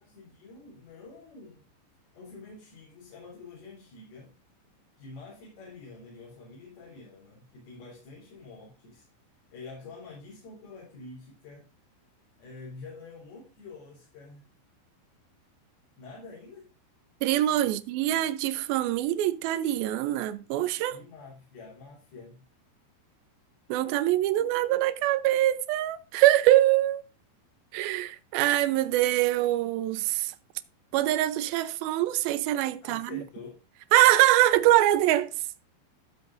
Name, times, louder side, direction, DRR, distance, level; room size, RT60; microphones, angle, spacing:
voice 1, 0.0-1.7 2.1-4.3 5.0-9.1 9.5-11.7 12.4-14.5 16.0-16.7 17.6-18.2 20.9-22.4 32.8-33.6, left 4 dB, 60° left, 5.2 m, -47 dB
voice 2, 17.2-21.0 23.7-27.0 27.7-30.3 30.9-33.2 33.9-35.3, right 14 dB, 85° right, 2.1 m, -24 dB
14.0 x 7.8 x 2.6 m
omnidirectional pair, 5.2 m